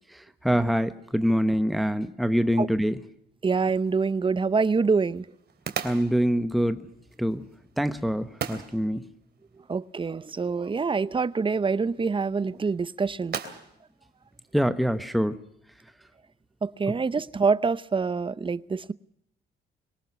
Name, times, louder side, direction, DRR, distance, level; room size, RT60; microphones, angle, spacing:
voice 1, 0.4-3.0 5.8-6.9 7.2-7.4 7.8-9.0 14.5-15.4, equal, ahead, 10 dB, 1.2 m, -24 dB
voice 2, 3.4-5.3 9.7-13.4 16.6-18.9, right 4 dB, 25° right, 18 dB, 0.8 m, -25 dB
sound 1, 3.5-15.2, right 7 dB, 55° right, 3.1 m, -42 dB
23.5 x 18.5 x 6.9 m, 0.75 s
cardioid pair, 90°, 20 cm